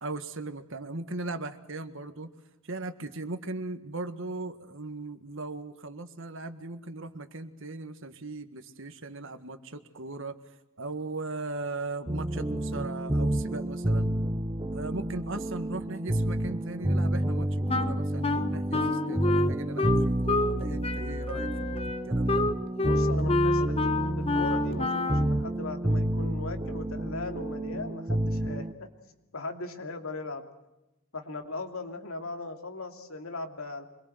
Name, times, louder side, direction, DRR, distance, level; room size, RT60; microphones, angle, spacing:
voice 1, 0.0-2.3 2.6-10.4 10.8-14.1 14.7-21.7 22.1-22.4, right 2 dB, 60° right, 9 dB, 1.8 m, -38 dB
sound 1, 12.1-28.7, right 1 dB, 20° right, 0.8 m, -29 dB
Wind instrument woodwind instrument, 17.7-20.6 20.8-25.3, left 2 dB, 25° left, 1.2 m, -28 dB
voice 2, 22.8-23.9 24.2-28.9 29.3-30.5 31.1-33.8, left 2 dB, 75° left, 5 dB, 2.8 m, -38 dB
26.0 x 22.0 x 8.0 m, 0.97 s
head